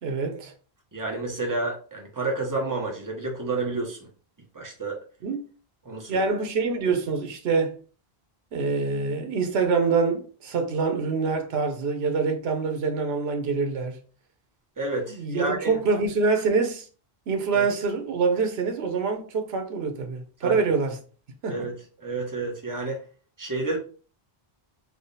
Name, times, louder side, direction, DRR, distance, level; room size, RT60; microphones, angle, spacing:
voice 1, 0.0-0.5 5.2-5.4 6.1-7.8 8.5-14.0 15.1-16.9 17.3-21.0 21.4-21.7, right 4 dB, 80° right, 1.0 m, -25 dB
voice 2, 0.9-4.0 4.5-5.0 5.8-6.2 14.8-15.8 17.5-17.6 20.4-20.6 21.5-23.0 23.4-23.8, right 3 dB, 20° right, 0.9 m, -30 dB
3.5 x 2.2 x 3.9 m
omnidirectional pair, 1.0 m